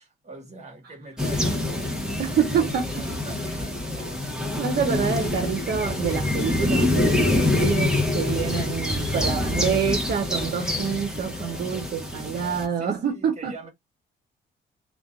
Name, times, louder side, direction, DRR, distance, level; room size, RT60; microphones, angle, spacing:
voice 1, 0.0-4.4 5.2-5.3 9.2-9.9 12.1-12.2 12.5-13.7, right 2 dB, 35° right, 1.3 m, -44 dB
sound 1, 1.2-12.7, left 1 dB, 5° right, 0.8 m, -26 dB
voice 2, 2.2-2.9 4.6-13.5, right 7 dB, 50° right, 0.6 m, -27 dB
2.5 x 2.2 x 2.2 m
cardioid pair, 90°, 20 cm